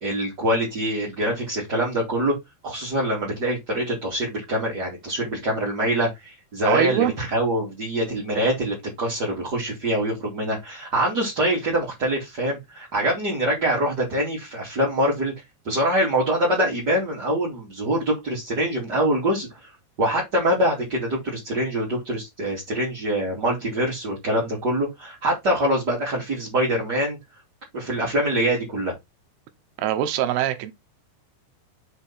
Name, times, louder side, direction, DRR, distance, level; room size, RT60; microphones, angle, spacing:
voice 1, 0.0-2.3 2.6-15.3 15.6-19.5 20.0-27.2 27.7-28.9, right 1 dB, 30° right, 2.5 m, -24 dB
voice 2, 6.6-7.1 29.8-30.7, right 11 dB, 75° right, 2.6 m, -23 dB
7.8 x 4.5 x 4.3 m
omnidirectional pair, 5.5 m